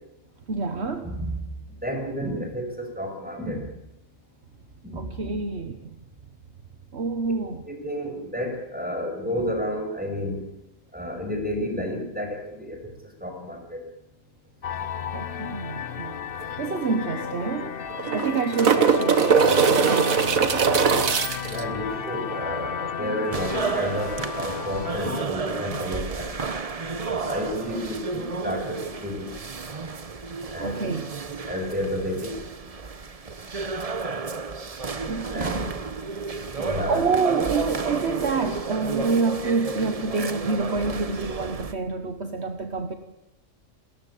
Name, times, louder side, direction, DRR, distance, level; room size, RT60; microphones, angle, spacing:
voice 1, 0.5-1.2 4.9-6.0 6.9-7.6 15.1-16.2 16.6-17.8 18.1-20.4 30.6-31.1 35.1-35.7 36.6-42.9, right 4 dB, 55° right, 8 dB, 1.5 m, -28 dB
voice 2, 1.0-1.4 1.8-3.7 4.8-5.0 5.3-5.4 7.7-10.4 10.9-12.8 13.2-13.8 21.5-26.3 27.1-29.3 30.5-30.8 31.5-32.3 35.3-35.7 36.5-37.0, equal, 5° right, 3 dB, 5.7 m, -31 dB
sound 1, 14.6-25.2, left 7 dB, 45° left, 1.1 m, -33 dB
sound 2, 16.4-16.5 16.8-16.9 17.9-21.6 24.2-24.3, right 6 dB, 90° right, 1.9 m, -20 dB
sound 3, 23.3-41.7, right 4 dB, 30° right, 0.9 m, -32 dB
28.5 x 14.5 x 8.5 m, 0.85 s
omnidirectional pair, 1.4 m